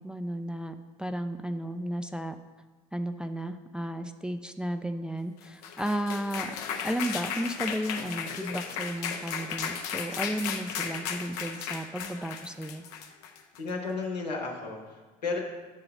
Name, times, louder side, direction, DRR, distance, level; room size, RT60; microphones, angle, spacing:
voice 1, 0.0-2.4 2.9-6.6 6.8-12.8, right 1 dB, 5° right, 7 dB, 0.4 m, -33 dB
sound 1, 5.4-13.7, left 7 dB, 70° left, 0.6 m, -35 dB
voice 2, 13.6-15.4, left 4 dB, 85° left, 0 dB, 1.0 m, -33 dB
9.1 x 3.8 x 5.6 m, 1.3 s
figure-of-eight pair, 55°, 21 cm